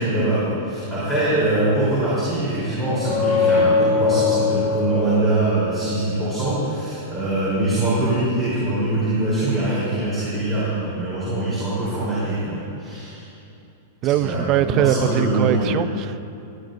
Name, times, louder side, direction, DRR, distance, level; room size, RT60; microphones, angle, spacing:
voice 1, 0.0-13.2 14.2-15.7, right 2 dB, 5° left, -12 dB, 3.5 m, -23 dB
sound 1, 2.8-6.4, left 4 dB, 40° left, 2.9 m, -22 dB
voice 2, 14.0-16.2, right 12 dB, 30° right, 13 dB, 0.3 m, -22 dB
19.5 x 13.0 x 2.6 m, 2.7 s
supercardioid pair, 170°, 0 cm